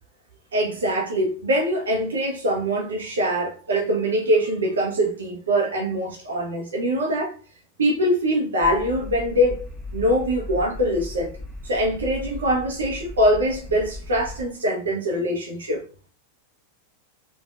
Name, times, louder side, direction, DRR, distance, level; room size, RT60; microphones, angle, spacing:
voice 1, 0.5-7.3 7.8-9.6 9.9-11.3 11.6-15.8, equal, 65° right, 0.8 m, -23 dB
sound 1, 8.6-14.4, left 2 dB, 5° right, 1.3 m, -37 dB
3.5 x 2.5 x 2.4 m
figure-of-eight pair, 90°, 0 cm